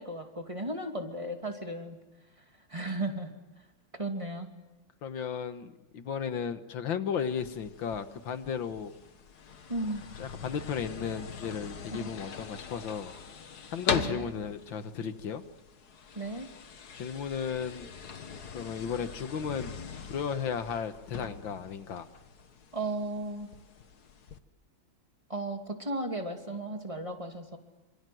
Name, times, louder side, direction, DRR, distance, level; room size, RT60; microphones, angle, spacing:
voice 1, 0.0-2.0 2.7-3.3 3.9-4.5 9.7-10.1 12.0-12.1 13.9-14.3 16.2-16.5 22.7-23.5 25.3-27.6, right 2 dB, 15° right, 3 dB, 2.7 m, -35 dB
voice 2, 5.0-8.9 10.2-13.1 13.7-15.4 16.9-17.9 18.5-19.7 20.1-22.1, left 7 dB, 85° left, 10 dB, 2.1 m, -34 dB
sound 1, 7.4-24.4, left 6 dB, 55° left, 1.9 m, -42 dB
28.0 x 26.5 x 7.9 m, 1.1 s
omnidirectional pair, 2.0 m